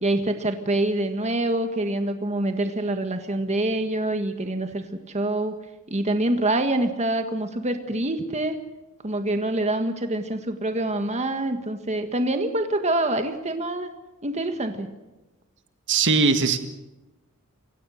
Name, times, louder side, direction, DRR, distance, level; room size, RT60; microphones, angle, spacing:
voice 1, 0.0-5.6 5.9-8.6 9.0-13.9 14.2-14.9, right 1 dB, 30° right, 6 dB, 1.7 m, -26 dB
voice 2, 15.9-16.6, right 4 dB, 60° right, 8 dB, 1.8 m, -20 dB
28.5 x 17.0 x 6.5 m, 1.1 s
head